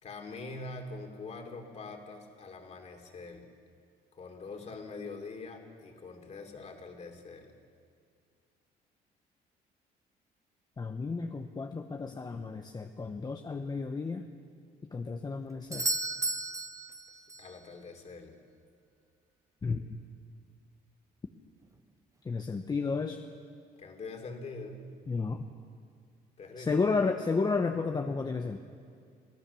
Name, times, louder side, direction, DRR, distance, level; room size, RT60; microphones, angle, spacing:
voice 1, 0.0-3.5 4.1-7.5 17.4-18.3 23.8-24.8 26.4-26.8, left 3 dB, 40° left, 3 dB, 3.0 m, -44 dB
voice 2, 10.8-14.2 14.9-15.9 19.6-20.0 22.2-23.2 25.1-25.4 26.6-28.6, left 4 dB, 25° left, 5 dB, 0.9 m, -32 dB
Doorbell, 15.7-17.6 21.6-21.7, right 2 dB, 20° right, 0.9 m, -34 dB
24.0 x 16.0 x 7.0 m, 2.2 s
cardioid pair, 110°, 17 cm